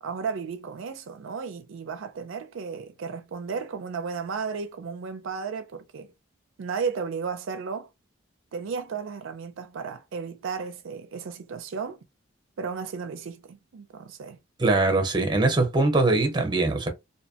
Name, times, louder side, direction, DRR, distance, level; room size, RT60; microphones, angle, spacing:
voice 1, 0.0-6.1 6.6-7.9 8.5-12.0 12.6-14.4, right 5 dB, 75° right, 0.4 m, -34 dB
voice 2, 14.6-16.9, right 2 dB, 20° right, 0.7 m, -22 dB
2.7 x 2.1 x 2.7 m
head